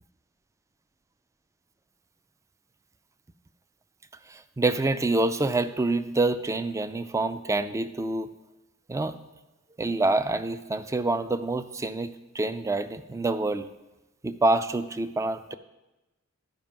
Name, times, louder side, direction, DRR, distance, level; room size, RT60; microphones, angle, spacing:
voice 1, 4.3-8.3 8.9-9.2 9.8-13.7 14.2-15.5, right 2 dB, 15° right, 12 dB, 0.3 m, -27 dB
10.5 x 5.2 x 5.2 m, 1.0 s
head